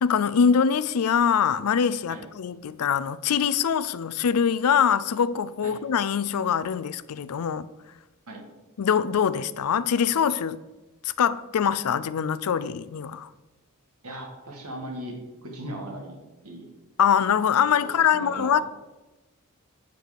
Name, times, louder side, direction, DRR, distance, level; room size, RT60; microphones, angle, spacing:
voice 1, 0.0-7.7 8.8-10.6 11.0-13.3 17.0-18.6, left 7 dB, 85° left, 0.4 m, -23 dB
voice 2, 14.0-16.2 16.4-16.7 17.8-18.6, right 1 dB, 85° right, 1.9 m, -38 dB
9.1 x 4.6 x 6.9 m
head